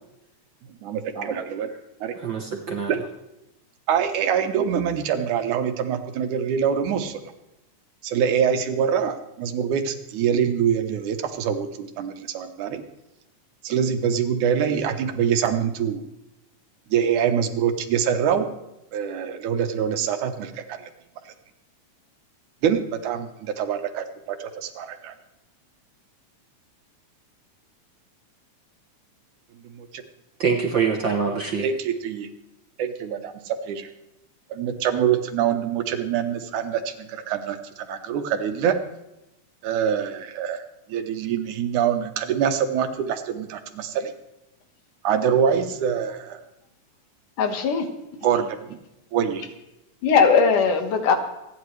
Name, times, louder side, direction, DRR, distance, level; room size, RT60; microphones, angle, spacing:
voice 1, 0.8-1.7 2.0-2.2 2.9-3.0 3.9-7.2 8.0-12.8 13.6-16.0 16.9-18.5 18.9-20.8 22.6-25.1 29.6-30.0 31.6-32.3 32.8-33.9 34.5-38.8 39.6-40.6 40.9-44.1 45.0-46.4 48.2-48.8 49.1-49.4, right 8 dB, 80° right, 7 dB, 2.5 m, -25 dB
voice 2, 2.2-2.9 30.4-31.7, right 5 dB, 60° right, 2 dB, 1.3 m, -25 dB
voice 3, 47.4-47.9 50.0-51.2, left 5 dB, 85° left, 6 dB, 2.9 m, -19 dB
27.5 x 10.0 x 3.2 m, 0.93 s
omnidirectional pair, 3.5 m